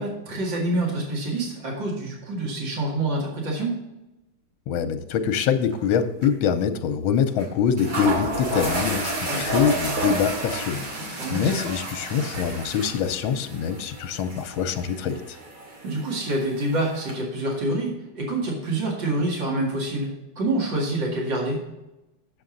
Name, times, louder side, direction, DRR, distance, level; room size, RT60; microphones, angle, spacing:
voice 1, 0.0-3.8 9.3-9.4 11.2-11.5 15.8-21.6, right 2 dB, 65° right, -2 dB, 2.8 m, -27 dB
voice 2, 4.7-15.2, left 7 dB, 80° left, 9 dB, 1.5 m, -24 dB
sound 1, 5.7-6.0 6.2-6.3 7.4-7.5 7.8-17.1, right 1 dB, 85° right, 3.1 m, -31 dB
8.6 x 7.0 x 3.8 m, 0.98 s
omnidirectional pair, 2.2 m